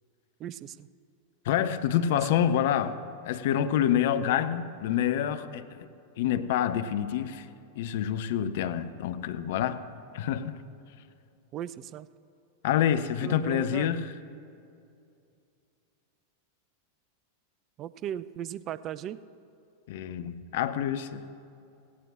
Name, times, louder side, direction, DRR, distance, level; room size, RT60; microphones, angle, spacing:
voice 1, 0.4-0.7 2.3-2.4 11.5-12.1 13.2-14.0 17.8-19.2, right 10 dB, 30° right, 0.4 m, -37 dB
voice 2, 1.4-5.9 6.2-7.5 7.8-9.8 10.1-10.6 12.6-14.2 19.9-21.2, left 10 dB, 55° left, 0.6 m, -27 dB
18.0 x 16.0 x 2.5 m
figure-of-eight pair, 90°, 0 cm